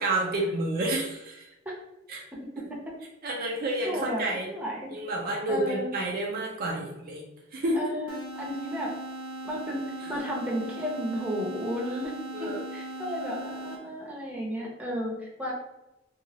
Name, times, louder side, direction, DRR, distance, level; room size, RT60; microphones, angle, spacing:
voice 1, 0.0-1.5 2.1-2.2 3.2-4.5 4.9-7.2 7.5-7.8 10.0-10.2 11.9-12.0 12.3-12.6, right 1 dB, 45° right, -1 dB, 0.4 m, -30 dB
voice 2, 3.8-4.9 5.5-5.9 7.7-8.9 9.4-9.8 10.1-12.1 12.4-15.5, equal, 5° right, -4 dB, 0.7 m, -33 dB
sound 1, 8.1-14.1, right 1 dB, 90° left, 0.6 m, -39 dB
2.9 x 2.3 x 2.8 m, 0.93 s
head